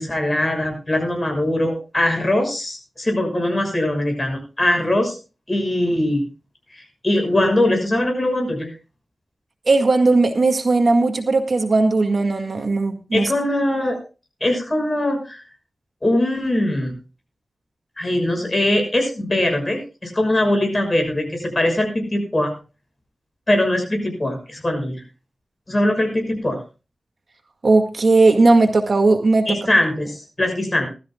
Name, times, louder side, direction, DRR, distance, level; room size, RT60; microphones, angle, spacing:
voice 1, 0.0-5.2 5.5-6.2 6.7-8.7 13.1-14.0 14.4-15.4 16.0-16.9 18.0-22.5 23.5-25.0 25.7-26.6 29.5-30.9, left 1 dB, 30° left, 3 dB, 6.1 m, -21 dB
voice 2, 9.7-13.3 27.6-29.5, right 3 dB, 60° right, 5 dB, 1.9 m, -17 dB
20.0 x 13.0 x 2.3 m, 0.31 s
wide cardioid pair, 80°, 0 cm